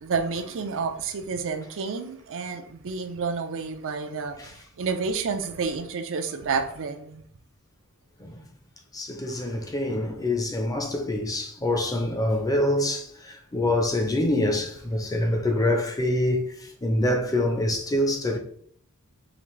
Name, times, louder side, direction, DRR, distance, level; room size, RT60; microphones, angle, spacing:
voice 1, 0.0-4.4 4.8-7.2, right 5 dB, 60° right, 0.5 m, -29 dB
voice 2, 8.9-18.4, left 1 dB, 15° left, 0.6 m, -25 dB
5.0 x 2.5 x 3.1 m
head